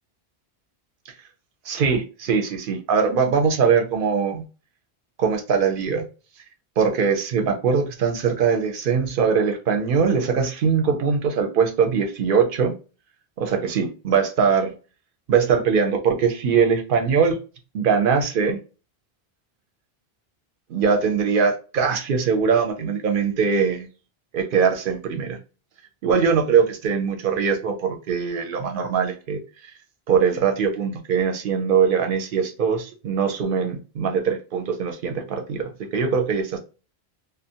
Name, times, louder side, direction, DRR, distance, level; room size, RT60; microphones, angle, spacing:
voice 1, 1.7-4.4 5.2-6.0 6.8-12.7 13.4-14.7 15.3-17.4 17.7-18.6 20.7-23.9 24.3-25.4 26.0-29.4 30.1-36.6, right 6 dB, 65° right, 0.7 m, -21 dB
2.4 x 2.0 x 2.7 m
omnidirectional pair, 1.1 m